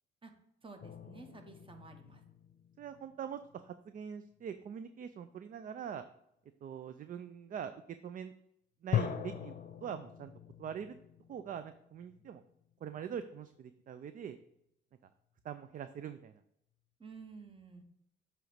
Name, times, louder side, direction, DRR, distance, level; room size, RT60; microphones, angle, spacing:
voice 1, 0.6-2.2 17.0-17.8, right 4 dB, 25° right, 5 dB, 1.1 m, -52 dB
sound 1, 0.8-3.8 4.3-4.7 8.9-13.3, left 9 dB, 45° left, 0.7 m, -41 dB
voice 2, 2.8-6.0 6.6-7.7 8.0-8.3 8.8-9.5 9.8-10.3 10.6-10.9 11.3-12.4 12.8-14.4 15.4-16.3, right 8 dB, 45° right, 11 dB, 0.4 m, -43 dB
7.6 x 3.1 x 5.0 m, 0.78 s
cardioid pair, 90°, 20 cm